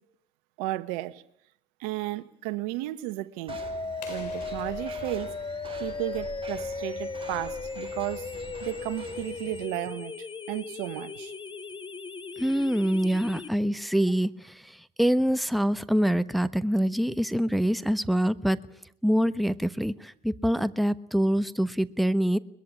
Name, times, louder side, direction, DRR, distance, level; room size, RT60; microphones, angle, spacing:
voice 1, 0.6-1.2 1.8-3.6 4.1-5.3 5.8-8.3 8.6-11.3, right 17 dB, 75° right, 1.2 m, -34 dB
sound 1, 3.5-13.5, left 4 dB, 25° left, 1.5 m, -37 dB
sound 2, 3.5-9.7, right 5 dB, 25° right, 6.8 m, -45 dB
sound 3, 4.0-6.7, left 8 dB, 85° left, 4.8 m, -50 dB
voice 2, 12.4-18.6 19.0-22.4, equal, ahead, 1.2 m, -25 dB
22.5 x 21.0 x 8.6 m
hypercardioid pair, 70°, 21 cm